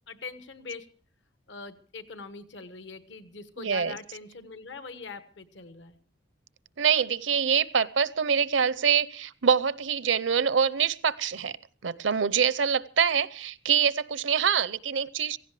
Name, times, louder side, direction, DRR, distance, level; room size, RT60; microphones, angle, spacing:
voice 1, 0.1-0.9 1.5-6.0, left 4 dB, 70° left, 12 dB, 1.2 m, -42 dB
voice 2, 3.6-4.0 6.8-11.6 11.8-15.4, right 7 dB, 75° right, 18 dB, 0.7 m, -25 dB
16.5 x 16.0 x 4.8 m, 0.41 s
head